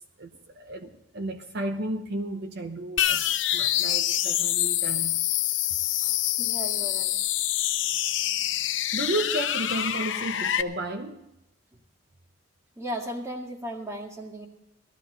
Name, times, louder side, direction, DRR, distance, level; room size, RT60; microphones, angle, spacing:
voice 1, 0.2-3.2 3.5-5.2 6.0-6.1 8.9-11.2, right 1 dB, 60° right, 6 dB, 0.9 m, -33 dB
sound 1, 3.0-10.6, left 12 dB, 80° left, 0.7 m, -26 dB
voice 2, 6.4-7.2 12.8-14.5, equal, 15° right, 1 dB, 2.0 m, -35 dB
18.0 x 13.5 x 4.0 m, 0.93 s
head